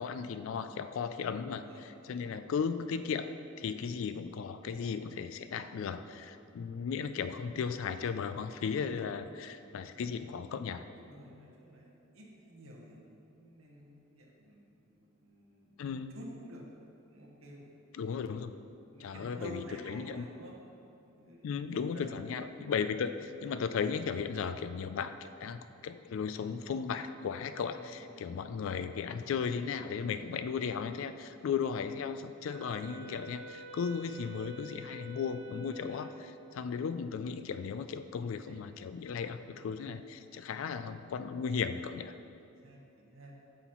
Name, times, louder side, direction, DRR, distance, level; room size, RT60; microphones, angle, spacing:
voice 1, 0.0-10.8 15.8-16.2 18.0-18.5 19.0-20.2 21.4-42.1, left 6 dB, 65° left, 11 dB, 0.3 m, -36 dB
voice 2, 10.9-15.8 16.1-16.6 17.1-17.8 18.9-20.5 21.0-21.5 21.9-22.2 22.5-22.6 27.5-28.4 29.2-29.4 29.9-30.3 35.9-36.0 38.4-38.9 40.3-40.5 42.5-43.3, equal, 85° right, -2 dB, 1.1 m, -51 dB
Wind instrument woodwind instrument, 32.4-36.3, equal, 5° right, 1.0 m, -48 dB
7.9 x 5.7 x 3.0 m, 2.6 s
head